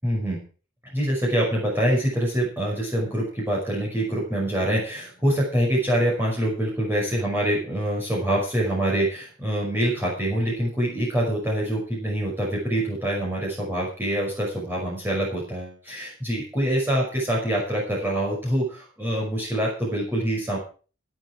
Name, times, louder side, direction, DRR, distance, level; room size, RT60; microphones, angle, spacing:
voice 1, 0.0-0.4 0.9-20.6, right 1 dB, 10° right, -3 dB, 5.7 m, -25 dB
16.0 x 8.1 x 6.3 m, 0.37 s
head